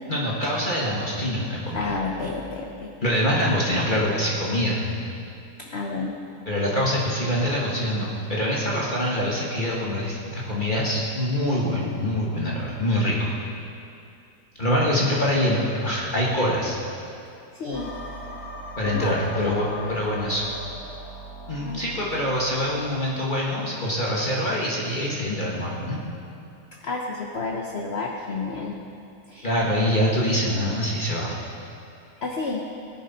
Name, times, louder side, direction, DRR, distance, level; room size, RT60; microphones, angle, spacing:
voice 1, 0.1-1.9 3.0-4.8 6.5-13.3 14.6-16.8 18.8-20.5 21.5-26.0 29.4-31.3, equal, 30° left, -5 dB, 1.6 m, -24 dB
voice 2, 1.7-2.9 5.7-6.1 17.6-17.9 18.9-19.9 21.6-21.8 26.8-28.8 29.3-29.5 32.2-32.7, left 3 dB, 50° left, 0 dB, 1.0 m, -30 dB
sound 1, 17.7-23.0, left 1 dB, 70° left, 2.2 m, -39 dB
17.0 x 10.5 x 4.2 m, 2.6 s
omnidirectional pair, 1.7 m